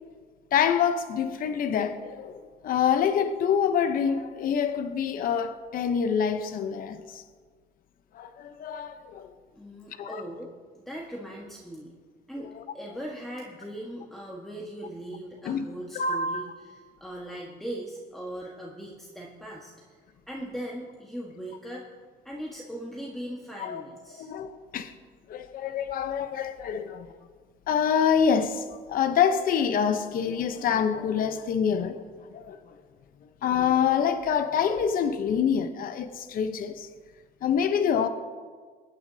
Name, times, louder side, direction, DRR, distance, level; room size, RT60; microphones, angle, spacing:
voice 1, 0.5-7.2 8.1-9.3 10.0-10.2 12.6-12.7 15.4-15.6 15.9-16.4 23.6-23.8 24.2-24.9 25.3-27.1 27.7-32.0 32.3-32.7 33.4-36.9 37.4-38.1, left 7 dB, 60° left, 0.9 m, -26 dB
voice 2, 9.5-10.5 10.9-11.9 12.3-20.0 20.3-21.8 22.2-24.3, right 1 dB, ahead, 1.5 m, -39 dB
23.5 x 9.4 x 2.8 m
cardioid pair, 110°, 17 cm